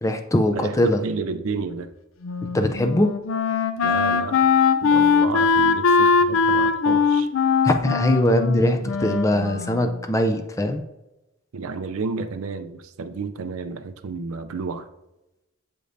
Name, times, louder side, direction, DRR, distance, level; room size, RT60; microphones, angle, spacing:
voice 1, 0.0-1.0 2.5-3.1 7.6-10.8, left 1 dB, 15° left, 6 dB, 0.4 m, -21 dB
voice 2, 1.0-1.9 3.8-4.4 4.8-7.3 11.5-14.9, right 4 dB, 80° right, 10 dB, 0.5 m, -31 dB
Wind instrument woodwind instrument, 2.2-10.0, left 5 dB, 70° left, 0.5 m, -21 dB
7.8 x 5.1 x 2.6 m, 0.96 s
head